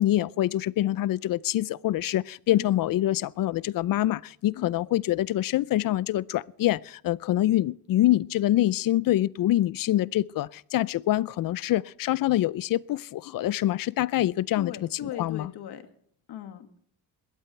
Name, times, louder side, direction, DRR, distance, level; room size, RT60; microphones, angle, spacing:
voice 1, 0.0-14.7 15.0-15.5, left 14 dB, 55° left, 0.5 m, -25 dB
voice 2, 14.5-15.8 16.3-16.7, left 10 dB, 75° left, 2.2 m, -38 dB
21.0 x 16.5 x 3.3 m
cardioid pair, 135°, 39 cm